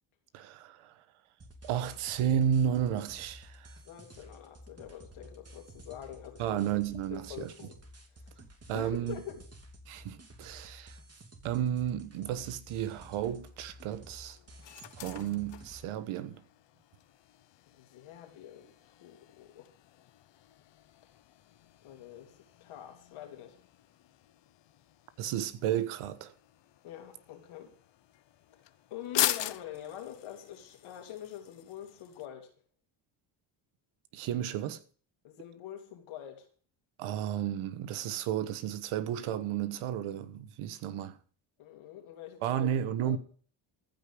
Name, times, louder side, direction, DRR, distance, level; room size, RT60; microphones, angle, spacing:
voice 1, 0.3-0.9 1.6-3.8 6.4-7.5 8.7-9.2 9.9-11.0 11.4-14.4 15.0-16.4 25.2-26.3 34.1-34.8 37.0-41.2 42.4-43.2, right 9 dB, 85° right, 1.3 m, -32 dB
sound 1, 1.4-15.8, equal, 30° right, 2.8 m, -52 dB
voice 2, 3.8-6.6 7.1-7.8 8.1-8.2 8.7-9.4 17.7-19.7 21.8-22.3 22.6-23.5 26.8-27.8 28.9-32.5 35.2-36.5 41.6-42.7 43.0-43.2, left 11 dB, 85° left, 3.1 m, -45 dB
sound 2, 12.7-32.3, left 13 dB, 60° left, 0.9 m, -42 dB
14.5 x 5.3 x 8.4 m
cardioid pair, 80°, 48 cm